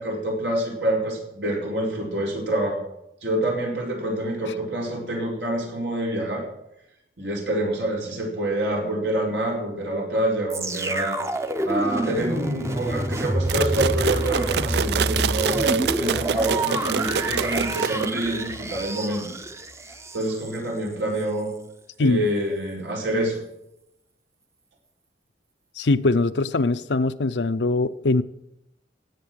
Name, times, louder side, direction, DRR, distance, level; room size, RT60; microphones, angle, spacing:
voice 1, 0.0-2.8 3.2-6.4 7.2-11.2 11.6-19.2 20.1-21.5 22.0-23.4, right 1 dB, 90° right, 4.7 m, -26 dB
sound 1, 10.5-20.6 21.2-21.3, right 1 dB, 15° right, 0.6 m, -28 dB
sound 2, 13.5-18.4, right 7 dB, 70° right, 0.4 m, -26 dB
voice 2, 25.8-28.2, left 2 dB, 85° left, 0.6 m, -22 dB
17.0 x 8.3 x 6.4 m
head